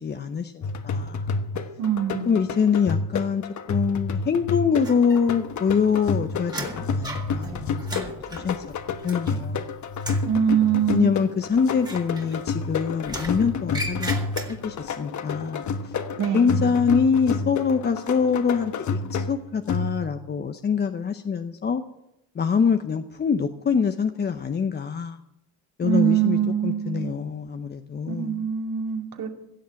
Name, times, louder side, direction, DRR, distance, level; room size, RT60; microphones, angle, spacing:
voice 1, 0.0-1.3 2.3-8.6 9.0-9.7 10.9-14.2 14.5-15.9 16.3-21.8 22.3-25.2 25.8-28.4, left 6 dB, 25° left, 7 dB, 0.7 m, -25 dB
sound 1, 0.6-20.3, left 4 dB, 50° left, 1.2 m, -30 dB
voice 2, 1.8-2.3 10.2-11.1 16.2-16.6 25.8-27.1 28.1-29.3, right 9 dB, 70° right, 3 dB, 2.5 m, -23 dB
sound 2, 4.8-5.6 5.9-9.6 9.9-10.3 11.8-12.7 13.0-14.8, right 1 dB, 10° right, 2.3 m, -37 dB
16.5 x 7.1 x 8.8 m, 0.87 s
cardioid pair, 110°, 37 cm